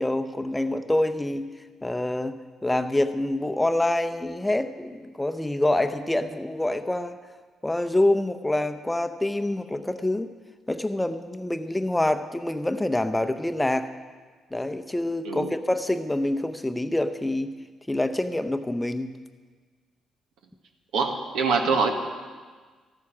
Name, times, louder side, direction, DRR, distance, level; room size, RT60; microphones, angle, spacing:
voice 1, 0.0-1.4 1.8-2.3 2.6-7.2 7.6-10.3 10.7-13.9 14.5-17.5 17.9-19.1, left 1 dB, 10° left, 9 dB, 0.7 m, -26 dB
voice 2, 20.9-21.9, right 4 dB, 85° right, 4 dB, 1.4 m, -24 dB
13.5 x 9.4 x 6.0 m, 1.5 s
cardioid pair, 90°, 0 cm